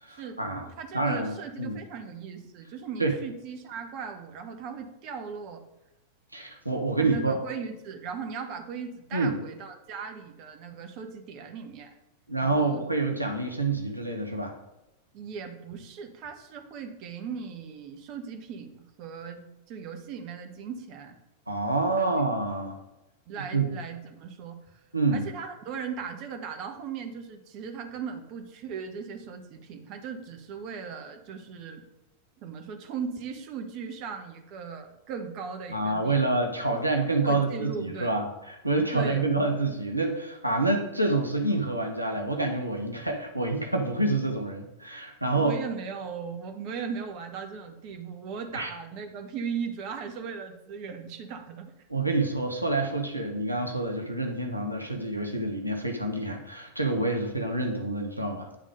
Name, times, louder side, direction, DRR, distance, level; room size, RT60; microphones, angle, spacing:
voice 1, 0.0-0.6 0.9-1.8 3.0-3.1 6.3-7.4 9.1-9.4 12.3-14.5 21.5-22.8 23.5-23.7 24.9-25.3 35.7-45.5 48.5-48.7 51.9-58.5, right 2 dB, 85° right, 3 dB, 0.9 m, -27 dB
voice 2, 0.7-5.6 7.0-12.0 12.4-12.8 15.1-21.2 22.0-22.2 23.3-24.8 25.1-31.8 32.4-36.2 36.7-36.8 37.2-38.1 38.9-39.3 45.4-51.7, right 6 dB, 40° right, 5 dB, 1.0 m, -38 dB
10.0 x 3.6 x 5.0 m, 0.94 s
figure-of-eight pair, 90°, 0 cm